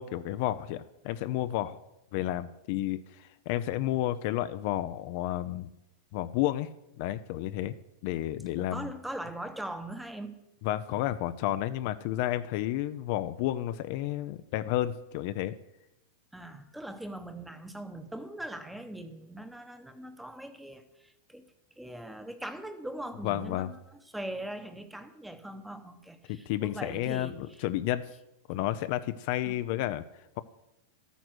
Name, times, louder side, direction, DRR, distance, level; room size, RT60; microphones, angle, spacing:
voice 1, 0.0-1.8 2.1-5.7 6.1-6.7 7.0-7.7 8.0-8.9 10.6-15.5 23.2-23.7 26.3-28.1 28.5-30.0, left 13 dB, 55° left, 12 dB, 0.6 m, -31 dB
voice 2, 8.6-10.3 16.3-21.5 21.8-23.8 24.1-27.6 29.5-29.6, right 1 dB, 5° right, 9 dB, 1.0 m, -41 dB
12.5 x 9.3 x 6.3 m, 0.90 s
supercardioid pair, 145°, 0 cm